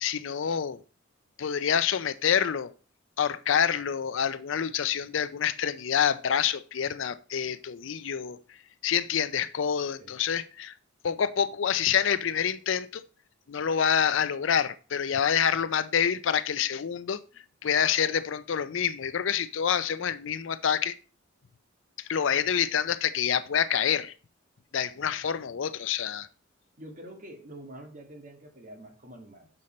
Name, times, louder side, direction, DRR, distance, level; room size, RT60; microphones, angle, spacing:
voice 1, 0.0-0.8 1.4-2.7 3.2-8.4 8.8-10.7 11.0-13.0 13.5-17.2 17.6-20.9 22.1-24.1 24.7-26.3, left 8 dB, 65° left, 0.5 m, -27 dB
voice 2, 26.8-29.5, right 1 dB, 40° right, 1.7 m, -46 dB
6.5 x 5.5 x 4.2 m
head